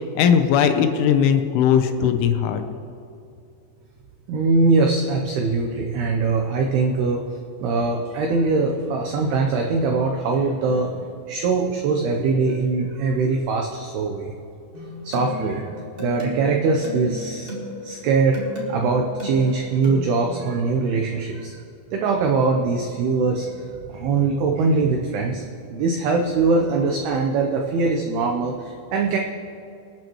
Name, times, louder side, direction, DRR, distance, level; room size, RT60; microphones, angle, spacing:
voice 1, 0.0-2.6, left 8 dB, 80° left, 7 dB, 3.2 m, -19 dB
voice 2, 4.3-7.2 7.6-14.3 15.0-15.7 16.0-17.5 17.8-21.6 21.9-25.4 25.7-29.2, right 4 dB, 85° right, 1 dB, 2.3 m, -22 dB
sound 1, 14.7-20.2, left 1 dB, 20° right, 1.4 m, -34 dB
27.0 x 9.1 x 3.1 m, 2.6 s
omnidirectional pair, 5.7 m